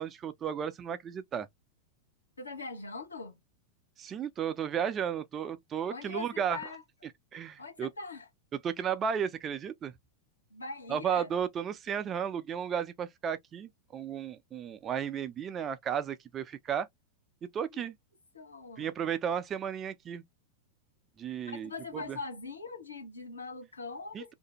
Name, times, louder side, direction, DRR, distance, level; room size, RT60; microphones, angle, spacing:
voice 1, 0.0-1.5 4.0-6.6 7.3-7.9 8.6-9.9 10.9-16.9 17.5-17.9 18.8-20.2 21.2-22.2 24.1-24.3, right 8 dB, 25° right, 0.4 m, -34 dB
voice 2, 2.4-3.4 5.9-6.8 7.6-8.3 10.5-11.3 17.7-17.8 18.3-18.9 21.5-24.3, left 4 dB, 75° left, 0.7 m, -42 dB
2.5 x 2.0 x 2.8 m
figure-of-eight pair, 90°, 0 cm